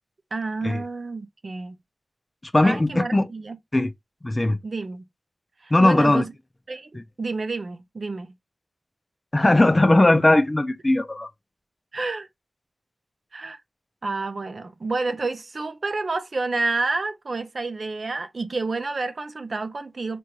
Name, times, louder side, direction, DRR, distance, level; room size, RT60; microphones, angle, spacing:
voice 1, 0.3-1.8 2.6-3.6 4.6-5.0 5.6-6.3 6.7-6.9 7.2-8.3 11.9-12.3 13.3-13.6 14.0-20.2, right 3 dB, 60° right, 0.6 m, -29 dB
voice 2, 2.5-3.3 3.7-3.9 4.2-4.6 5.7-6.2 6.9-7.0 9.3-11.3, left 1 dB, 30° left, 0.5 m, -18 dB
4.5 x 2.6 x 3.0 m
cardioid pair, 50°, 0 cm